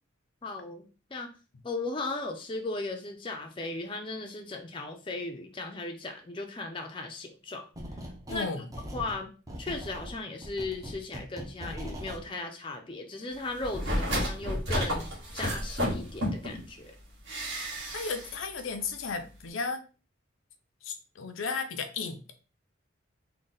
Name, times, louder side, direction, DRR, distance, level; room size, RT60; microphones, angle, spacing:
voice 1, 0.4-1.4 1.6-7.7 8.3-8.5 8.9-9.3 9.6-16.9, left 2 dB, 25° left, 3 dB, 0.5 m, -37 dB
sound 1, 7.7-8.4 8.7-12.2, equal, 15° right, 0.6 m, -41 dB
voice 2, 8.3-8.7 17.9-19.8 20.8-22.3, left 4 dB, 80° left, 7 dB, 0.6 m, -34 dB
sound 2, 13.6-16.6 17.3-18.3 18.6-18.7, equal, 60° right, 1.7 m, -31 dB
3.7 x 2.2 x 4.0 m, 0.34 s
head